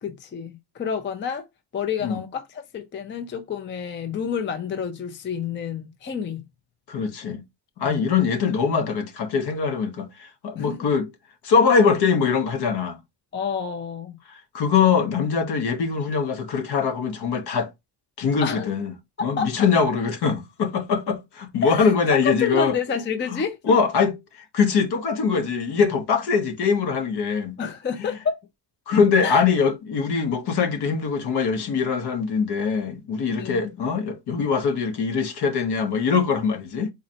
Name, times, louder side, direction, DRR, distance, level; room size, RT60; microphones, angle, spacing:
voice 1, 0.0-1.5 1.7-6.5 7.8-8.1 10.5-10.9 13.3-14.2 18.4-18.8 19.2-19.7 21.6-23.6 27.6-28.4 29.2-29.4 33.4-33.7, left 6 dB, 25° left, 0.4 m, -29 dB
voice 2, 6.9-7.4 7.8-11.1 11.4-13.0 14.5-17.7 18.2-18.9 19.2-22.7 23.3-23.4 23.7-24.2 24.5-27.6 28.9-36.9, left 5 dB, 65° left, 0.9 m, -22 dB
4.1 x 3.1 x 2.7 m
wide cardioid pair, 180°, 44 cm